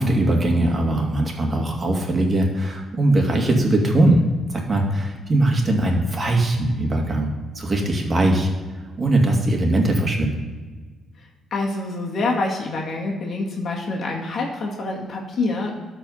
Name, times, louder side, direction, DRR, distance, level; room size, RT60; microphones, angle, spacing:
voice 1, 0.0-4.2 4.7-8.5 9.0-10.4, right 1 dB, 35° right, 1 dB, 2.2 m, -20 dB
voice 2, 11.5-15.7, left 3 dB, 55° left, -2 dB, 2.0 m, -26 dB
13.0 x 4.6 x 5.6 m, 1.4 s
cardioid pair, 90°, 0 cm